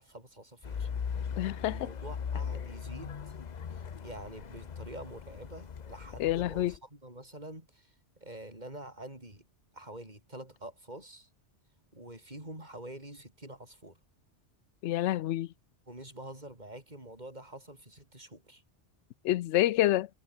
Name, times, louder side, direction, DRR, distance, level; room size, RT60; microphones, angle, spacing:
voice 1, 0.0-1.2 1.6-3.2 3.7-7.9 8.2-9.5 9.7-11.3 11.9-14.0 15.9-18.6, right 1 dB, 40° right, 6.7 m, -47 dB
sound 1, 0.6-6.8, left 7 dB, 40° left, 0.8 m, -39 dB
voice 2, 1.4-1.8 6.2-6.7 14.8-15.5 19.2-20.1, left 14 dB, 80° left, 0.9 m, -27 dB
omnidirectional pair, 1.2 m